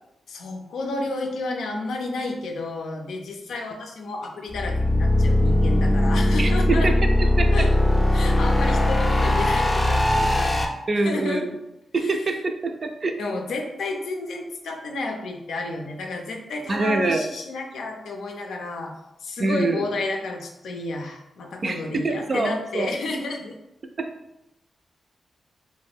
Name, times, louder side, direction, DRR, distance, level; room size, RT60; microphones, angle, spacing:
voice 1, 0.3-7.0 7.5-7.7 8.1-10.7 11.0-11.4 12.0-12.2 13.2-18.9 19.2-23.6, left 2 dB, 85° left, 2 dB, 0.4 m, -31 dB
sound 1, 4.5-10.6, left 1 dB, 25° left, 0.5 m, -20 dB
voice 2, 6.4-7.7 10.9-11.6 11.9-13.2 16.7-17.3 19.4-19.8 21.6-22.9 24.0-24.1, right 3 dB, 50° right, 5 dB, 0.4 m, -25 dB
2.5 x 2.1 x 3.4 m, 0.90 s
supercardioid pair, 50°, 0 cm